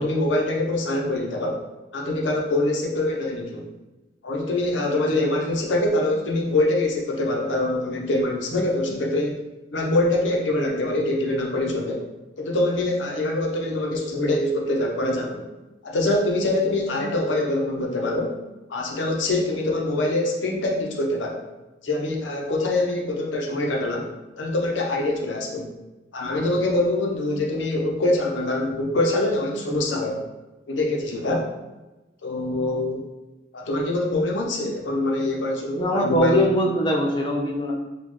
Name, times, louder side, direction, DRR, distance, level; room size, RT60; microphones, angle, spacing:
voice 1, 0.0-1.6 1.9-3.7 4.2-9.4 9.7-12.0 12.4-15.5 15.8-18.3 18.7-21.4 21.8-24.1 24.4-25.7 26.1-30.2 30.7-31.5 32.2-33.0 33.5-36.5, left 2 dB, 85° left, 0 dB, 0.7 m, -24 dB
voice 2, 35.8-37.7, right 1 dB, 25° left, 0 dB, 0.4 m, -23 dB
4.2 x 2.3 x 3.1 m, 1.1 s
head